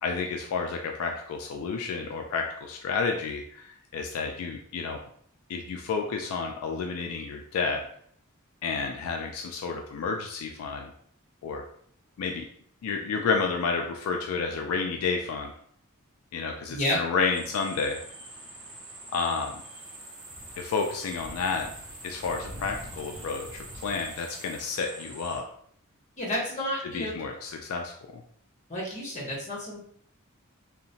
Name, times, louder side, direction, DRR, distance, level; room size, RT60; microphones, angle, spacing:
voice 1, 0.0-5.0 5.5-7.8 8.6-10.9 11.4-11.6 12.2-12.4 12.8-15.5 16.3-18.0 19.1-19.6 20.6-21.7 22.0-25.4 26.9-28.2, left 4 dB, 75° left, 4 dB, 0.3 m, -30 dB
voice 2, 16.7-17.0 26.2-27.2 28.7-29.8, equal, 35° left, -3 dB, 0.9 m, -30 dB
sound 1, 17.3-25.4, right 1 dB, 65° right, 0.7 m, -44 dB
2.8 x 2.1 x 2.7 m, 0.65 s
head